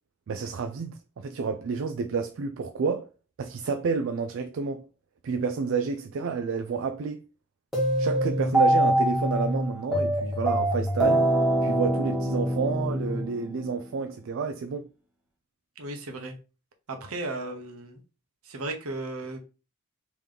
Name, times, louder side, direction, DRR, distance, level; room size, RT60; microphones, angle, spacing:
voice 1, 0.3-3.1 3.4-4.9 5.2-7.2 8.0-11.3 11.6-14.9, right 5 dB, 60° right, 0.3 m, -30 dB
sound 1, 7.7-13.9, right 1 dB, ahead, 1.3 m, -24 dB
voice 2, 15.8-16.3 16.9-18.0 18.4-19.4, right 2 dB, 75° right, 0.8 m, -35 dB
3.4 x 3.0 x 3.7 m
head